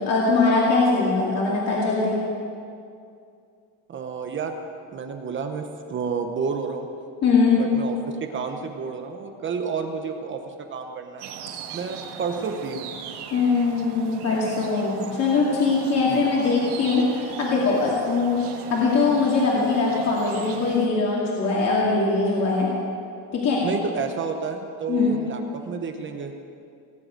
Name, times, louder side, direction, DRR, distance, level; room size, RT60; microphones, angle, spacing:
voice 1, 0.0-2.2 7.2-7.6 13.3-18.4 18.7-22.7 23.3-23.6 24.9-25.2, left 4 dB, 40° left, -4 dB, 2.4 m, -21 dB
voice 2, 3.9-4.6 4.9-6.9 7.6-11.3 11.7-12.9 16.1-16.3 23.6-26.3, right 5 dB, 30° right, 5 dB, 0.8 m, -30 dB
sound 1, 11.2-20.9, right 7 dB, 75° right, 1.7 m, -38 dB
18.0 x 7.8 x 9.2 m, 2.4 s
cardioid pair, 165°, 41 cm